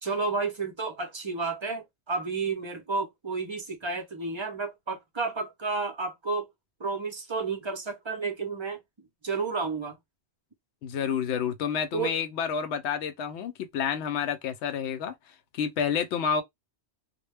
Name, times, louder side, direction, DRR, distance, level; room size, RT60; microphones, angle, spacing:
voice 1, 0.0-6.5 6.8-8.8 9.2-10.0 11.9-12.1, right 4 dB, 35° right, 0.5 m, -31 dB
voice 2, 10.8-15.1 15.5-16.4, left 7 dB, 75° left, 0.8 m, -29 dB
2.2 x 2.1 x 3.2 m
omnidirectional pair, 1.2 m